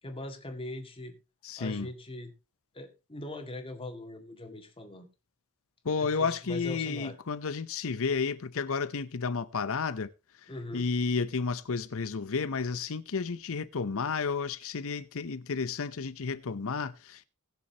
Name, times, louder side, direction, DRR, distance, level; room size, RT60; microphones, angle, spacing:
voice 1, 0.0-1.1 1.6-2.3 2.7-5.1 6.0-7.2 10.5-10.9, left 1 dB, 25° left, 2.0 m, -41 dB
voice 2, 1.4-1.9 5.8-10.1 10.7-17.3, left 5 dB, 65° left, 0.7 m, -32 dB
20.0 x 7.0 x 2.9 m
head